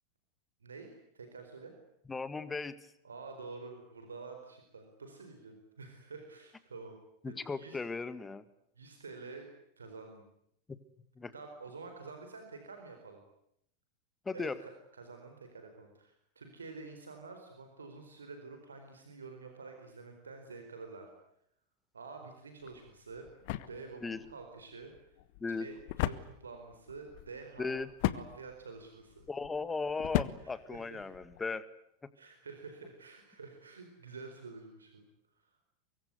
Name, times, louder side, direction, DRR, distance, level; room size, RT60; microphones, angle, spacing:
voice 1, 0.6-1.7 3.0-7.0 7.2-7.8 8.8-9.5 9.8-10.3 11.3-13.2 14.3-21.1 21.9-23.3 23.7-25.2 25.5-27.7 28.1-29.2 30.4-31.1 32.1-35.1 35.3-35.5, right 4 dB, 70° right, 5 dB, 4.4 m, -48 dB
voice 2, 2.1-2.8 7.2-8.4 10.7-10.8 11.2-11.3 14.3-14.6 24.0-24.2 25.4-25.7 27.6-27.9 29.3-31.7, left 4 dB, 15° left, 15 dB, 1.8 m, -37 dB
sound 1, 22.6-31.5, left 15 dB, 50° left, 1.3 m, -38 dB
24.5 x 22.5 x 9.6 m, 0.74 s
figure-of-eight pair, 90°, 0 cm